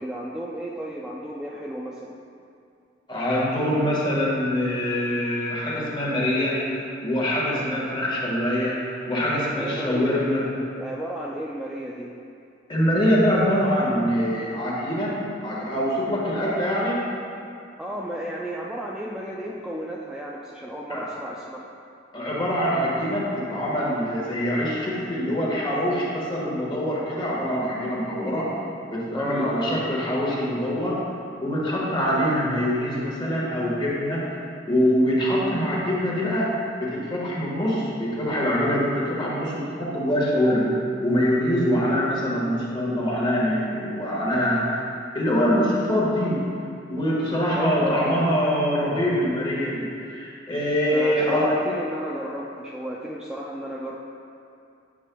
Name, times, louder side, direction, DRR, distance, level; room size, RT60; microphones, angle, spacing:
voice 1, 0.0-2.1 9.6-12.1 17.8-21.7 29.1-29.6 47.5-48.3 50.9-54.0, equal, 5° right, -4 dB, 0.3 m, -33 dB
voice 2, 3.1-10.4 12.7-17.0 20.9-21.0 22.1-28.5 28.9-31.0 31.4-34.3 34.6-36.5 36.8-40.7 41.0-44.9 45.1-46.4 46.9-51.6, equal, 25° left, -5 dB, 1.5 m, -24 dB
8.7 x 7.3 x 2.3 m, 2.6 s
head